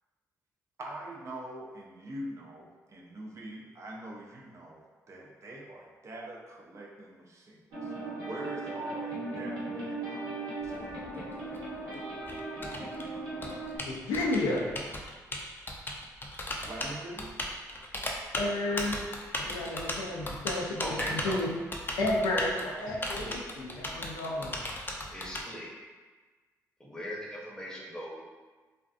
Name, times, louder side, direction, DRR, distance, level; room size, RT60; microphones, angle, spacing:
voice 1, 0.8-10.8 16.6-17.3, right 1 dB, 45° right, -2 dB, 0.5 m, -43 dB
sound 1, 7.7-13.8, right 2 dB, 90° right, 0.9 m, -38 dB
Typing, 10.6-25.4, left 1 dB, 30° left, 0.4 m, -37 dB
voice 2, 13.8-14.8 18.4-19.0 19.5-21.5 22.0-24.6, left 2 dB, 90° left, -2 dB, 0.4 m, -31 dB
voice 3, 20.8-21.4 23.2-23.4 25.1-25.7 26.8-28.2, equal, 10° left, -4 dB, 0.8 m, -38 dB
2.5 x 2.4 x 2.3 m, 1.4 s
supercardioid pair, 60°, 7 cm